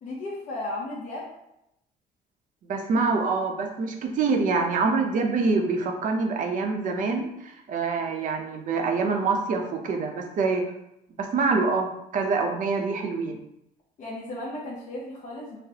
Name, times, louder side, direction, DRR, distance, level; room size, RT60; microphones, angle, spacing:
voice 1, 0.0-1.3 14.0-15.6, left 1 dB, 45° left, -4 dB, 0.6 m, -35 dB
voice 2, 2.7-10.6 11.2-13.4, right 4 dB, 50° right, 3 dB, 0.6 m, -25 dB
3.9 x 2.0 x 2.7 m, 0.82 s
cardioid pair, 110°, 17 cm